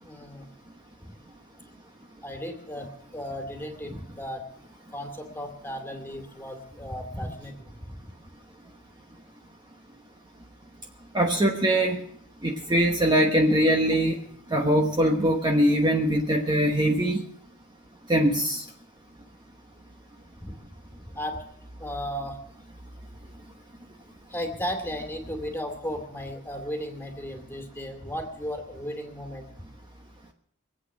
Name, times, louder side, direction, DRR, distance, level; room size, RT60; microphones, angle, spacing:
voice 1, 0.0-0.5 1.0-1.1 2.2-4.4 4.9-8.0 20.4-20.6 21.1-21.4 21.8-22.4 24.3-29.4, equal, 10° left, 4 dB, 2.4 m, -35 dB
voice 2, 11.1-12.0 12.4-14.2 14.5-17.2 18.1-18.6, right 1 dB, 20° right, 2 dB, 1.1 m, -22 dB
24.0 x 8.6 x 6.0 m, 0.66 s
head